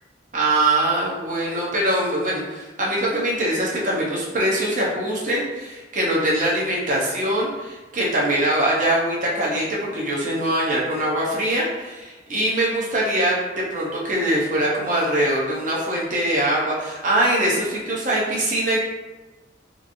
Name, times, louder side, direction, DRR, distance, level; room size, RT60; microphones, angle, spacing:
voice 1, 0.3-18.9, right 1 dB, 45° right, -4 dB, 0.8 m, -23 dB
3.0 x 2.5 x 2.6 m, 1.2 s
head